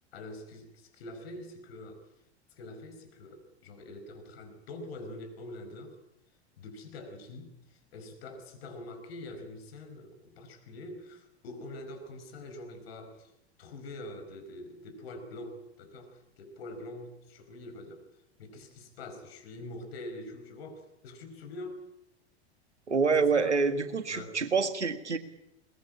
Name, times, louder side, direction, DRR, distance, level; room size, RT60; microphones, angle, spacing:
voice 1, 0.1-2.0 2.6-6.0 6.6-13.3 13.6-18.0 18.4-21.9 23.2-24.4, left 2 dB, 60° left, 6 dB, 5.1 m, -45 dB
voice 2, 22.9-25.2, right 5 dB, 85° right, 11 dB, 1.8 m, -27 dB
22.0 x 20.5 x 8.6 m, 0.88 s
figure-of-eight pair, 90°, 34 cm